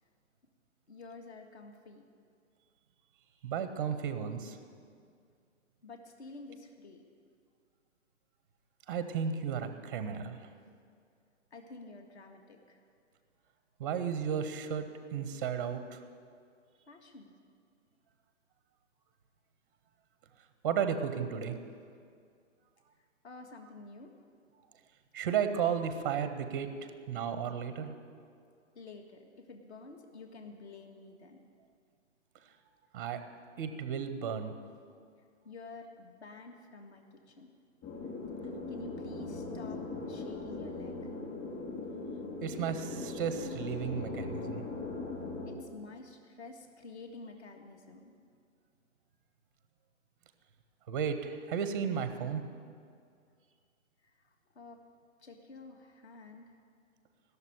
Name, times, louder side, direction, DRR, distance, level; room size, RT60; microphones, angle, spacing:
voice 1, 0.9-2.0 5.8-7.0 11.5-12.9 16.9-17.3 23.2-24.1 28.8-31.4 35.4-37.5 38.4-41.2 45.4-48.1 54.0-54.8 55.2-56.6, left 3 dB, 60° left, 4 dB, 1.9 m, -50 dB
voice 2, 3.4-4.6 8.9-10.5 13.8-16.0 20.6-21.6 25.1-27.9 32.9-33.2 33.6-34.6 42.4-44.7 50.9-52.4, right 7 dB, 15° right, 9 dB, 0.6 m, -34 dB
sound 1, 37.8-45.5, left 3 dB, 20° left, 2.8 m, -40 dB
17.0 x 6.9 x 9.9 m, 2.2 s
hypercardioid pair, 165°, 38 cm